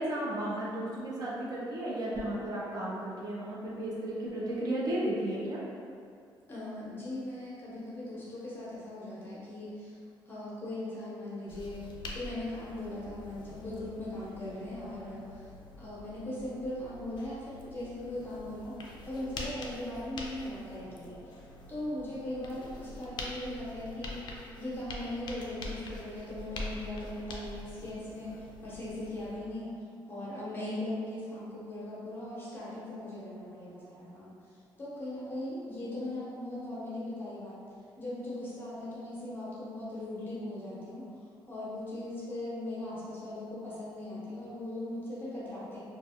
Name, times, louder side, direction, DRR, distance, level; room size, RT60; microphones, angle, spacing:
voice 1, 0.0-5.6, right 1 dB, 45° right, -6 dB, 0.5 m, -34 dB
voice 2, 6.5-10.0 10.3-11.8 12.1-15.5 15.8-18.7 19.1-21.3 21.7-24.2 24.6-29.7 30.1-37.6 38.0-41.0 41.5-45.8, left 1 dB, 25° left, -9 dB, 0.9 m, -39 dB
sound 1, 11.5-29.4, left 2 dB, 55° left, 0.4 m, -45 dB
2.3 x 2.2 x 2.7 m, 2.4 s
cardioid pair, 110°, 9 cm